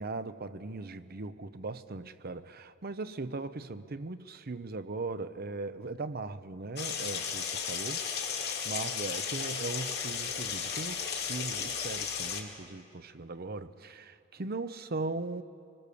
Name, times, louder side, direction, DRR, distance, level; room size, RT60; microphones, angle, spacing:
voice 1, 0.0-8.0 8.6-15.4, right 3 dB, 50° right, 0.7 m, -39 dB
sound 1, 6.8-12.4, left 6 dB, 55° left, 2.4 m, -34 dB
24.5 x 21.0 x 7.0 m
head